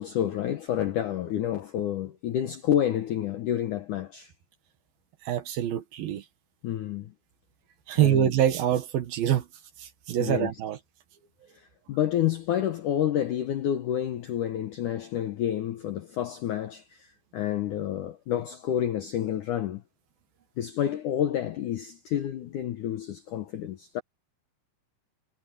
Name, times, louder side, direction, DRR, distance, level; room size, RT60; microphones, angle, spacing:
voice 1, 0.0-4.3 6.6-7.1 8.0-8.3 10.2-10.5 11.5-19.8 20.6-24.0, left 10 dB, 75° left, 1.9 m, -29 dB
voice 2, 5.3-6.2 7.9-9.5 9.8-10.8, right 11 dB, 65° right, 2.9 m, -25 dB
omnidirectional pair, 5.0 m